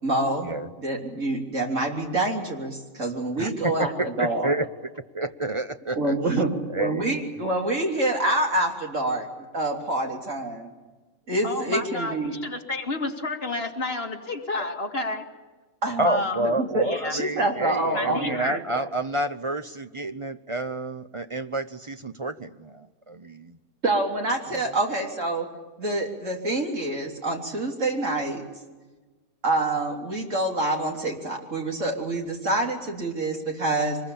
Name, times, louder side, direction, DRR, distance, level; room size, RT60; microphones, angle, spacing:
voice 1, 0.0-0.5 0.8-4.5 6.0-9.3 9.5-10.7 11.3-12.3 15.8-16.1 16.4-16.8 17.1-18.8 23.8-25.5 25.8-28.4 29.4-34.0, right 2 dB, 65° right, 1 dB, 3.8 m, -26 dB
voice 2, 3.4-4.7 5.1-6.1 6.7-7.2 16.0-23.6 24.5-24.6, right 1 dB, 30° right, 9 dB, 0.7 m, -29 dB
voice 3, 11.4-15.3 16.1-16.4 16.8-17.2 17.9-18.6, left 2 dB, 45° left, 2 dB, 2.5 m, -30 dB
24.5 x 21.0 x 8.6 m, 1.3 s
omnidirectional pair, 1.4 m